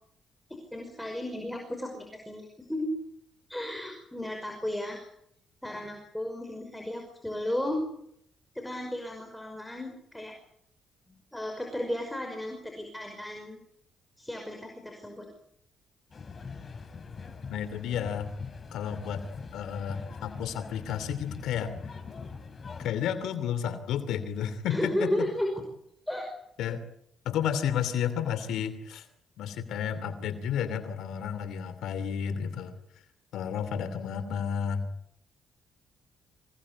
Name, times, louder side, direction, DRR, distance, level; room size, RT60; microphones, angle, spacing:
voice 1, 0.7-2.9 3.5-5.0 5.6-7.8 8.5-10.3 11.3-13.6 14.2-15.3 24.7-25.5 26.1-26.3, left 1 dB, 5° left, 3 dB, 5.5 m, -34 dB
sound 1, 16.1-22.9, left 5 dB, 40° left, 3.9 m, -42 dB
voice 2, 17.5-18.3 18.7-19.2 19.5-21.7 22.8-25.3 26.6-26.8 27.2-29.1 29.4-32.7 33.3-34.9, left 8 dB, 80° left, 11 dB, 2.7 m, -32 dB
26.0 x 18.0 x 9.7 m, 0.74 s
cardioid pair, 90°, 0 cm